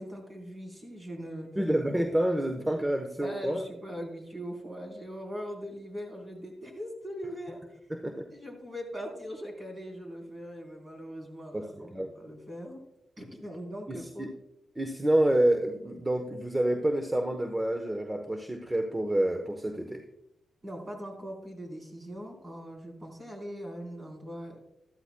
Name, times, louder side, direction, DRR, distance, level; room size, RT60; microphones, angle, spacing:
voice 1, 0.0-1.5 3.2-7.8 8.3-12.8 13.2-14.3 20.6-24.6, equal, 30° right, 0 dB, 3.8 m, -41 dB
voice 2, 1.6-3.6 7.9-8.3 11.5-12.2 13.9-14.3 14.8-20.0, right 1 dB, 15° right, 5 dB, 0.9 m, -28 dB
13.0 x 13.0 x 2.2 m, 0.83 s
cardioid pair, 85°, 0 cm